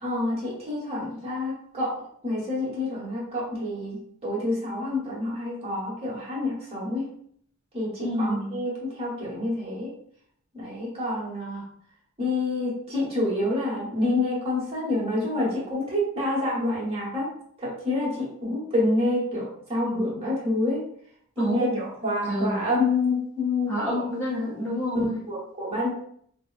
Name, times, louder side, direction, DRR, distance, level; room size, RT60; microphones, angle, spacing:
voice 1, 0.0-1.9 2.2-4.0 4.2-7.1 7.7-9.9 10.5-11.6 12.2-17.3 17.6-20.9 21.4-23.9 25.3-25.9, left 2 dB, 30° right, -6 dB, 1.3 m, -27 dB
voice 2, 8.0-8.6 21.4-21.8 22.2-22.6 23.7-25.2, equal, 10° left, -7 dB, 0.6 m, -28 dB
4.7 x 2.1 x 2.5 m, 0.64 s
head